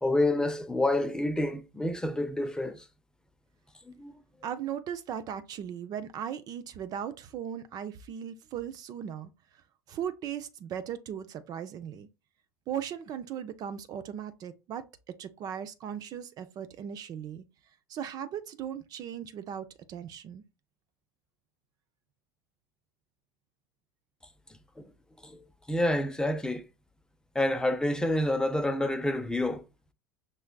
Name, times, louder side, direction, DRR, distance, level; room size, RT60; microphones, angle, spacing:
voice 1, 0.0-2.8 3.9-4.1 25.2-25.4 25.7-26.6 27.3-29.6, left 1 dB, 5° left, 0.6 m, -28 dB
voice 2, 4.4-9.3 9.9-12.1 12.7-17.4 17.9-20.4, right 9 dB, 40° right, 0.5 m, -38 dB
5.9 x 3.1 x 2.3 m
figure-of-eight pair, 75°, 10 cm